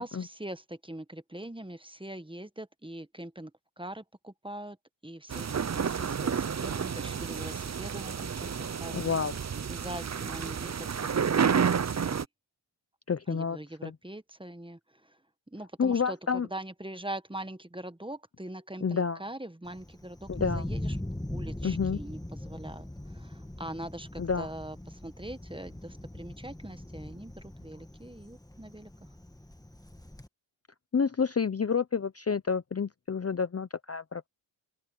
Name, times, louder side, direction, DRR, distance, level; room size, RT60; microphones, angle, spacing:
voice 1, 0.0-3.5 3.8-4.8 5.0-9.0 9.7-12.2 13.3-15.2 15.5-21.0 21.3-28.9, right 1 dB, 10° right, 1.1 m, -42 dB
sound 1, 5.3-12.3, right 7 dB, 35° right, 0.6 m, -30 dB
voice 2, 8.9-9.4 13.1-14.0 15.8-16.5 18.8-19.2 20.3-20.7 21.6-22.0 24.2-24.5 30.9-34.3, left 6 dB, 30° left, 0.6 m, -29 dB
Thunder, 19.7-30.3, left 1 dB, 5° left, 1.5 m, -40 dB
wide cardioid pair, 60°, 49 cm